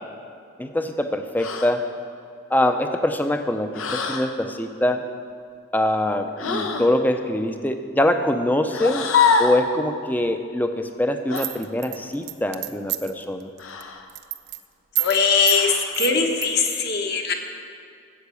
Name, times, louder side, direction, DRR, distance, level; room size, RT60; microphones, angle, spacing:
voice 1, 0.6-1.8 2.5-5.0 5.7-9.1 9.4-13.5, left 1 dB, 10° left, 7 dB, 0.5 m, -23 dB
sound 1, 1.4-1.8 3.7-4.3 6.4-6.9 8.7-9.7 11.3-11.5 13.6-14.1 15.5-16.0, left 5 dB, 85° left, 1.0 m, -24 dB
sound 2, 11.4-13.2 13.6-13.8 14.1-14.6 15.0-15.2 15.5-15.6 15.9-16.5, right 16 dB, 50° right, 0.5 m, -28 dB
voice 2, 15.0-17.3, left 5 dB, 50° left, 2 dB, 1.2 m, -21 dB
13.0 x 8.0 x 6.9 m, 2.3 s
head